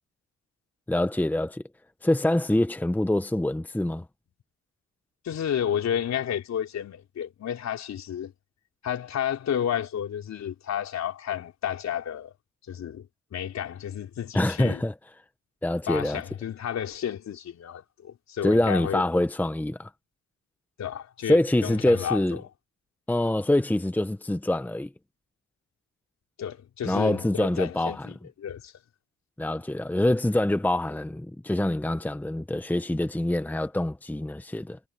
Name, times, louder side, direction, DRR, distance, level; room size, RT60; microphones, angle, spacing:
voice 1, 0.9-1.6 2.0-4.0 14.3-14.9 15.6-16.2 18.4-19.9 21.3-22.4 23.1-24.9 26.8-28.1 29.4-34.8, left 1 dB, 5° left, 1.1 m, -25 dB
voice 2, 5.2-8.3 8.8-12.3 12.7-14.8 15.9-19.0 20.8-22.4 26.4-28.7, left 9 dB, 60° left, 4.0 m, -31 dB
cardioid pair, 90°, 30 cm